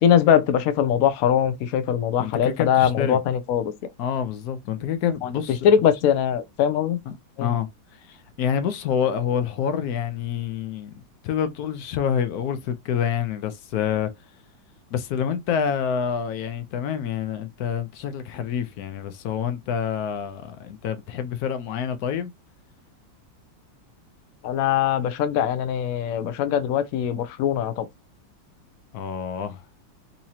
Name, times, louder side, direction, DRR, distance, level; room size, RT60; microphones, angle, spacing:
voice 1, 0.0-3.7 5.2-5.3 5.6-7.0 7.4-7.5 24.4-27.9, left 9 dB, 90° left, 0.7 m, -21 dB
voice 2, 2.2-3.2 4.0-5.6 7.1-7.7 8.0-14.1 14.9-22.3 28.9-29.6, left 8 dB, 70° left, 0.9 m, -27 dB
4.0 x 2.9 x 2.8 m
omnidirectional pair, 2.1 m